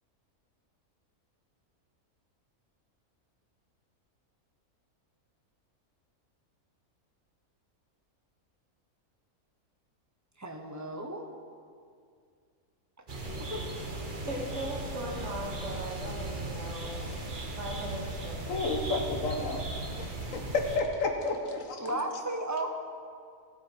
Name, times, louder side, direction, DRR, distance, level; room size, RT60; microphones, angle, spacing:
voice 1, 10.4-11.2 13.5-13.6 21.8-22.7, right 1 dB, 15° right, 3 dB, 0.7 m, -34 dB
sound 1, 13.1-20.8, right 2 dB, 35° right, 1.3 m, -37 dB
voice 2, 14.2-17.0 17.5-18.7, right 1 dB, 50° right, -2 dB, 2.1 m, -38 dB
voice 3, 18.5-19.6 19.9-21.8, left 3 dB, 65° left, 4 dB, 1.4 m, -31 dB
14.5 x 7.7 x 4.5 m, 2.2 s
omnidirectional pair, 1.5 m